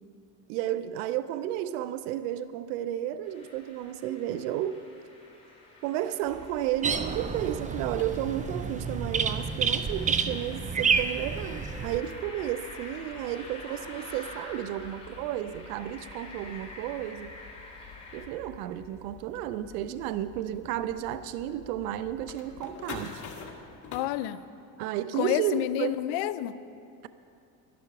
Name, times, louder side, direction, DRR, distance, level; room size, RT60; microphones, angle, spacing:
voice 1, 0.5-4.8 5.8-17.3 18.1-23.2 24.8-26.0, right 12 dB, 90° right, 14 dB, 0.6 m, -32 dB
sound 1, 3.2-18.2, left 2 dB, 15° left, 3.7 m, -48 dB
sound 2, 6.2-24.0, left 6 dB, 45° left, 1.9 m, -49 dB
sound 3, 6.8-12.0, right 5 dB, 20° right, 0.5 m, -29 dB
voice 2, 23.9-24.4 25.2-26.5, left 13 dB, 65° left, 13 dB, 0.6 m, -29 dB
11.5 x 11.0 x 5.8 m, 2.6 s
supercardioid pair, 100°, 43 cm